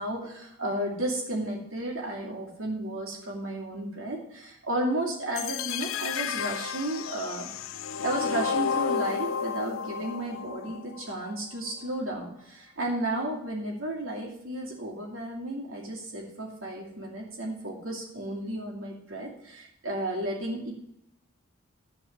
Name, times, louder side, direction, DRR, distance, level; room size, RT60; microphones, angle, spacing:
voice 1, 0.0-7.5 8.0-20.7, right 1 dB, 90° right, -2 dB, 2.6 m, -33 dB
sound 1, 5.4-11.4, left 6 dB, 85° left, 0.5 m, -32 dB
12.0 x 4.6 x 7.4 m, 0.76 s
head